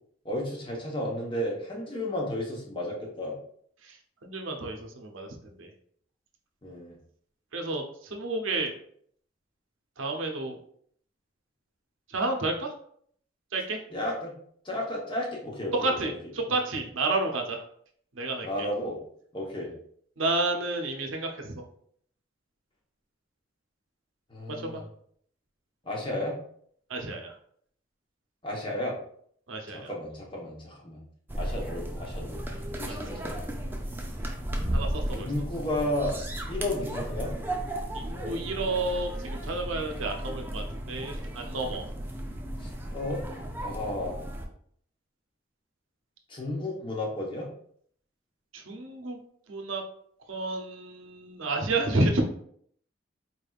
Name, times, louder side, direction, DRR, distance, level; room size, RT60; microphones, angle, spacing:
voice 1, 0.2-3.3 6.6-7.0 13.9-14.3 14.6-16.1 18.4-19.0 19.3-19.7 24.3-24.9 25.8-26.3 28.4-29.0 29.7-31.0 31.3-33.5 35.1-36.2 36.5-37.3 42.6-43.3 43.5-44.2 46.3-47.5, left 1 dB, 25° left, -2 dB, 1.0 m, -33 dB
voice 2, 4.2-5.7 7.5-8.7 10.0-10.6 12.1-12.7 13.5-13.8 15.7-17.6 18.2-18.5 20.2-21.6 24.6-24.8 26.9-27.3 29.5-29.9 34.7-35.3 37.9-41.8 48.5-49.2 49.5-49.8 50.3-52.2, right 2 dB, 85° right, 3 dB, 0.7 m, -30 dB
sound 1, 31.3-44.5, right 1 dB, 10° right, 0.4 m, -34 dB
4.4 x 3.4 x 2.4 m, 0.63 s
head